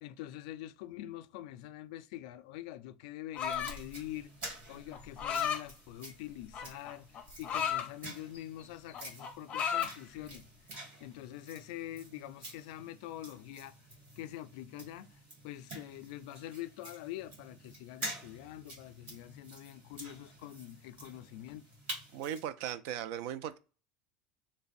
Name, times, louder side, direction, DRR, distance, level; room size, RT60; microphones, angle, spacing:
voice 1, 0.0-10.4 11.0-13.7 14.2-15.1 15.4-21.6, left 13 dB, 80° left, 0.3 m, -45 dB
sound 1, 3.3-3.9 4.9-5.6 6.5-7.9 8.4-8.6 8.9-10.0, left 8 dB, 30° left, 0.6 m, -33 dB
sound 2, 3.4-22.5, right 1 dB, 40° right, 1.8 m, -49 dB
voice 2, 22.1-23.6, right 10 dB, 65° right, 0.4 m, -38 dB
3.4 x 2.1 x 4.0 m
cardioid pair, 155°, 4 cm